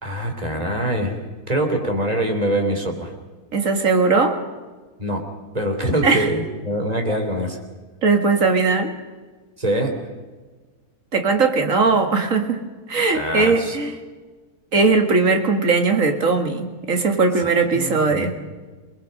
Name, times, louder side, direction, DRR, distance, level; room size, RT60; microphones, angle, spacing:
voice 1, 0.0-1.2 1.5-3.1 5.0-5.2 5.5-7.6 9.6-9.9 13.1-13.8 17.4-18.3, right 1 dB, 25° right, 4 dB, 3.2 m, -24 dB
voice 2, 3.5-4.4 6.0-6.3 8.0-8.9 11.1-12.6 12.9-14.0 14.7-18.4, right 4 dB, 55° right, 5 dB, 2.3 m, -19 dB
28.0 x 20.5 x 5.3 m, 1.3 s
omnidirectional pair, 1.6 m